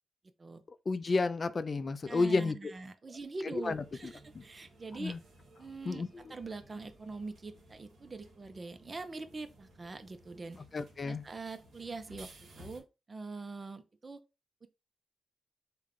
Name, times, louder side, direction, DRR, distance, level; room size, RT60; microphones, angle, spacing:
voice 1, 0.9-2.6 3.4-4.4 5.0-5.2 5.9-6.3 10.7-11.2, left 3 dB, 45° left, 0.3 m, -32 dB
voice 2, 2.1-5.2 5.6-6.0 6.3-10.6 11.0-14.2 14.6-14.7, right 3 dB, 40° right, 0.5 m, -43 dB
sound 1, 3.6-12.8, right 1 dB, 70° right, 1.0 m, -57 dB
3.5 x 2.2 x 3.5 m
cardioid pair, 60°, 0 cm